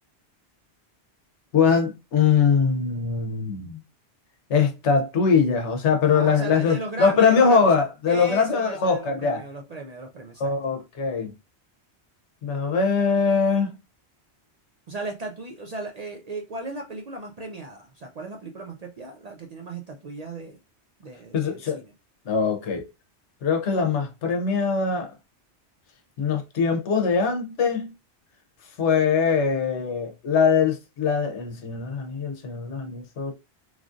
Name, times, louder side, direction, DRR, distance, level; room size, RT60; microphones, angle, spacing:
voice 1, 1.5-3.8 4.5-9.4 10.4-11.3 12.4-13.7 21.3-21.8 22.3-22.8 23.4-25.1 26.2-27.9 28.8-33.3, left 5 dB, 90° left, 1.0 m, -22 dB
voice 2, 6.0-7.8 8.1-10.5 14.9-20.6 21.0-21.9, right 2 dB, 60° right, 0.4 m, -36 dB
3.1 x 2.5 x 2.4 m
omnidirectional pair, 1.1 m